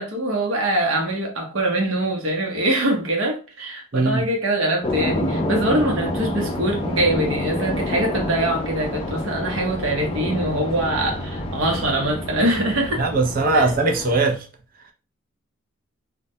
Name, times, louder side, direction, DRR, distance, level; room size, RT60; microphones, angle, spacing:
voice 1, 0.0-13.0 13.5-13.7, right 1 dB, 70° right, 0.8 m, -23 dB
voice 2, 3.9-4.2 13.0-14.4, right 3 dB, 40° right, 0.4 m, -20 dB
sound 1, 4.8-14.2, left 1 dB, 25° left, 0.3 m, -28 dB
2.2 x 2.1 x 2.7 m
head